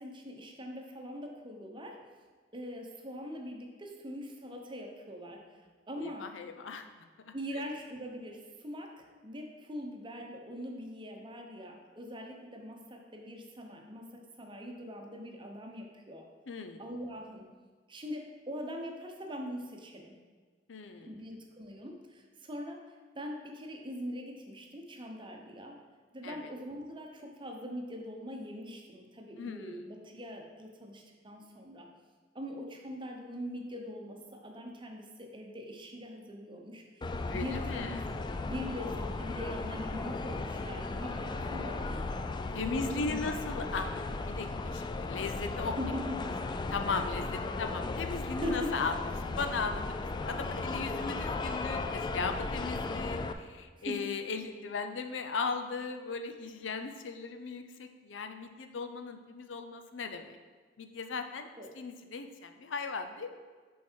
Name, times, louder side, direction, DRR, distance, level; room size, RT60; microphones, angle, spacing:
voice 1, 0.0-2.0 2.5-5.4 5.9-6.3 7.3-16.3 16.8-17.5 17.9-20.1 21.1-22.9 23.1-25.8 26.1-31.9 32.3-38.1 38.4-42.2 42.7-43.4 45.8-46.4 48.4-48.8 53.8-54.1 61.6-61.7, equal, 25° right, 2 dB, 0.9 m, -42 dB
voice 2, 6.0-7.3 16.5-16.8 20.7-21.2 26.2-26.5 29.4-29.8 37.3-38.0 42.5-45.8 46.7-60.4 60.8-61.5 61.8-63.4, left 4 dB, 85° left, 7 dB, 0.6 m, -37 dB
sound 1, 37.0-53.3, left 3 dB, 25° left, 0.3 m, -36 dB
7.0 x 4.7 x 4.5 m, 1.5 s
head